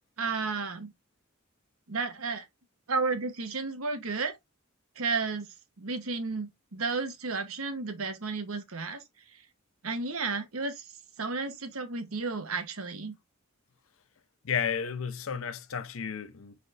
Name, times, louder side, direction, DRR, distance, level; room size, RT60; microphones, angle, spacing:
voice 1, 0.2-0.9 1.9-2.5 2.9-4.4 5.0-9.0 9.8-10.9 11.2-13.1, right 4 dB, 75° right, 1.1 m, -32 dB
voice 2, 14.4-16.5, left 7 dB, 65° left, 0.6 m, -32 dB
4.7 x 4.4 x 2.5 m
head